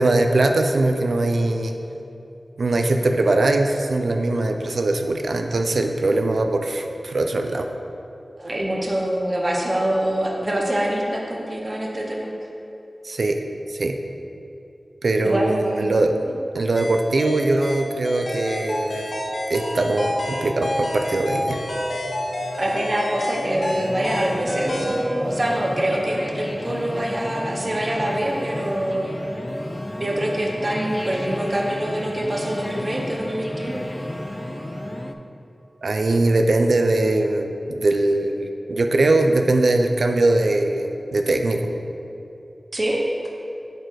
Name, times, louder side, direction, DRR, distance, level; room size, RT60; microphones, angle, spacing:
voice 1, 0.0-1.7 2.6-7.7 13.0-13.4 13.7-14.0 15.0-16.1 16.5-19.1 19.5-21.6 35.8-41.6, right 2 dB, 80° right, 5 dB, 0.4 m, -21 dB
voice 2, 8.4-12.3 15.2-16.0 22.5-29.1 30.0-33.8 42.7-43.0, right 1 dB, 40° right, -1 dB, 0.8 m, -25 dB
sound 1, 16.8-25.1, left 1 dB, 80° left, 0.9 m, -29 dB
sound 2, 21.5-35.1, left 1 dB, 20° left, 0.3 m, -33 dB
6.5 x 4.1 x 4.7 m, 2.7 s
wide cardioid pair, 70°, 0 cm